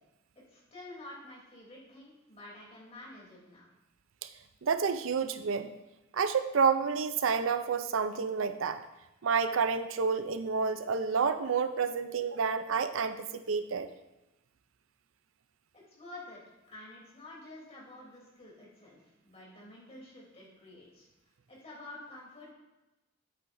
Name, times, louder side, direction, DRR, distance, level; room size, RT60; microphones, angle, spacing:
voice 1, 0.5-3.6 15.9-16.4 16.7-21.1 21.5-22.5, left 2 dB, 30° left, -5 dB, 3.2 m, -49 dB
voice 2, 4.6-5.7 6.1-8.8 9.2-13.2 13.5-13.9, right 5 dB, 80° right, 11 dB, 0.5 m, -29 dB
9.8 x 8.4 x 2.6 m, 0.99 s
head